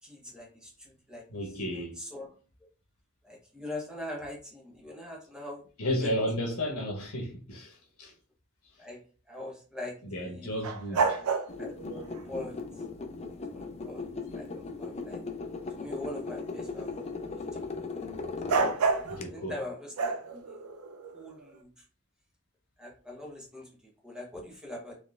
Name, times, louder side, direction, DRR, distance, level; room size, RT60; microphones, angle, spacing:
voice 1, 0.0-1.3 1.7-2.3 3.2-6.1 8.8-11.3 11.6-12.8 13.5-15.2 15.7-17.9 18.3-20.6 21.1-21.8 22.8-25.0, left 1 dB, 5° right, 0.8 m, -43 dB
voice 2, 1.3-2.0 5.8-8.1 10.0-11.2 19.0-19.6, equal, 85° left, 1.0 m, -33 dB
sound 1, 10.6-12.2 18.5-19.2 20.0-21.4, right 4 dB, 70° right, 0.4 m, -29 dB
sound 2, 11.5-19.2, left 3 dB, 30° left, 0.4 m, -38 dB
4.0 x 3.0 x 2.4 m
head